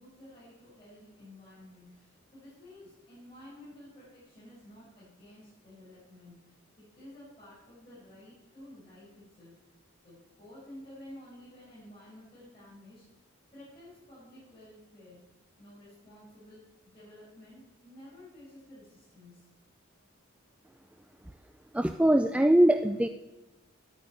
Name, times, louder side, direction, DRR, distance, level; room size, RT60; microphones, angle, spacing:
voice 1, 0.0-9.8 10.0-13.0 13.5-15.2 15.6-16.6 16.9-19.5, left 1 dB, 25° left, -10 dB, 6.6 m, -52 dB
voice 2, 21.7-23.1, right 1 dB, 5° right, 8 dB, 0.3 m, -22 dB
10.5 x 9.6 x 9.1 m, 1.0 s
head